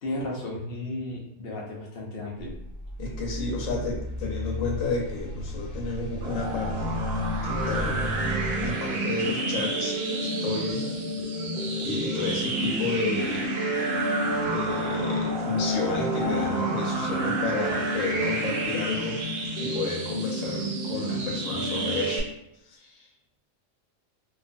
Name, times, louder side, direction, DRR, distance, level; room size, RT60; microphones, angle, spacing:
voice 1, 0.0-2.5, left 1 dB, 55° left, -3 dB, 0.8 m, -34 dB
sound 1, 2.4-8.7, left 1 dB, 20° left, 0.7 m, -34 dB
voice 2, 3.0-7.0 7.4-8.1 8.6-10.9 11.8-13.5 13.8-14.2 14.4-19.2 19.6-22.3 22.6-23.1, left 3 dB, 80° left, -1 dB, 1.1 m, -32 dB
sound 2, 6.2-22.2, right 1 dB, 60° right, 0.7 m, -29 dB
sound 3, 7.6-12.6, left 2 dB, 85° right, 1.0 m, -44 dB
3.1 x 2.3 x 2.5 m, 0.80 s
omnidirectional pair, 1.3 m